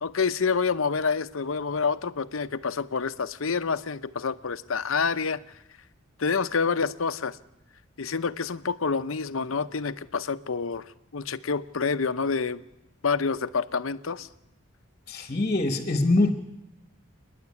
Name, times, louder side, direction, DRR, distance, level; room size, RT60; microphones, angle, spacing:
voice 1, 0.0-5.4 6.2-7.4 8.0-10.8 11.1-12.6 13.0-14.3, left 5 dB, 75° left, 0.8 m, -27 dB
voice 2, 15.1-16.3, left 2 dB, 35° left, 1.3 m, -23 dB
29.0 x 10.5 x 9.6 m
head